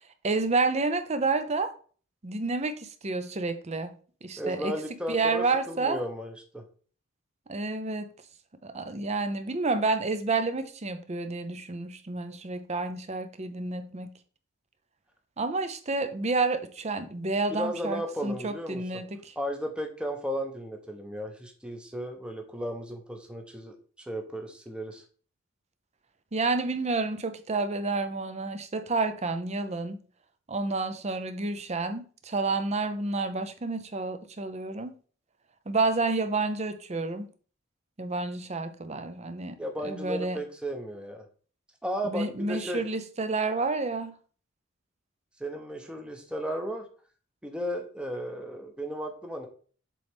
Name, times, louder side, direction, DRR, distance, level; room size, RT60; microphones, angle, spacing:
voice 1, 0.2-1.7 2.2-3.9 4.2-4.7 5.1-6.0 7.5-8.1 8.6-14.1 15.4-19.3 26.3-30.0 30.5-34.9 35.7-37.3 38.0-40.4 42.0-44.1, right 3 dB, 35° right, 9 dB, 0.6 m, -29 dB
voice 2, 4.4-6.6 17.5-19.0 19.4-23.7 24.1-25.0 39.6-41.2 41.8-42.8 45.4-46.8 47.4-49.5, equal, 5° right, 3 dB, 0.8 m, -35 dB
7.5 x 3.9 x 3.5 m, 0.41 s
head